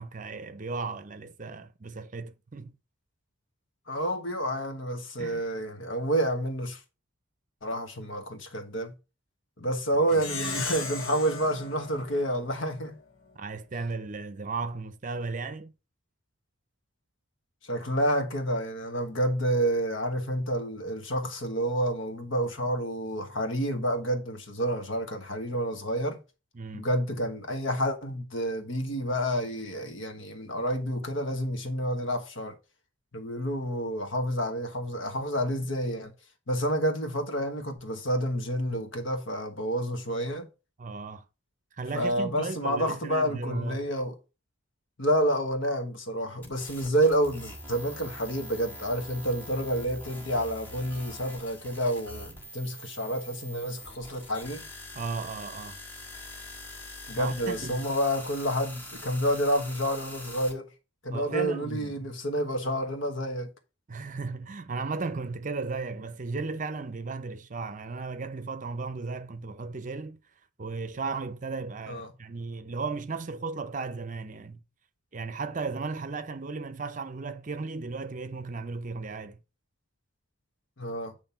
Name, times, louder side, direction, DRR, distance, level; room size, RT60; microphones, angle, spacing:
voice 1, 0.0-2.7 5.2-5.4 13.4-15.7 26.5-26.9 40.8-41.2 41.8-43.8 54.9-55.8 57.2-57.9 61.1-62.1 63.9-70.2 70.6-74.6 75.1-79.4, right 4 dB, 40° right, 0.6 m, -35 dB
voice 2, 3.9-6.8 7.6-8.9 9.6-13.0 17.6-26.2 26.7-32.5 33.1-36.1 36.5-40.5 41.9-44.1 45.0-54.6 57.1-60.7 61.0-63.5 71.9-72.1 80.8-81.1, equal, 70° left, 1.4 m, -29 dB
Plucked string instrument, 10.1-12.9, left 4 dB, 85° left, 1.8 m, -37 dB
sound 1, 46.4-60.5, left 1 dB, 10° left, 1.7 m, -44 dB
8.8 x 3.2 x 5.6 m
head